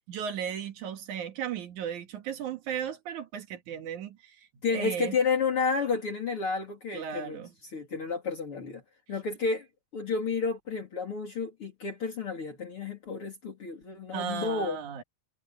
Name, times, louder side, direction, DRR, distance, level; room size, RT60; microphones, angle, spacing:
voice 1, 0.1-4.4 4.7-5.2 6.9-7.5 14.1-15.0, right 8 dB, 80° right, 3.2 m, -35 dB
voice 2, 4.6-8.8 9.1-9.7 9.9-14.8, left 5 dB, 45° left, 3.9 m, -31 dB
omnidirectional pair, 3.4 m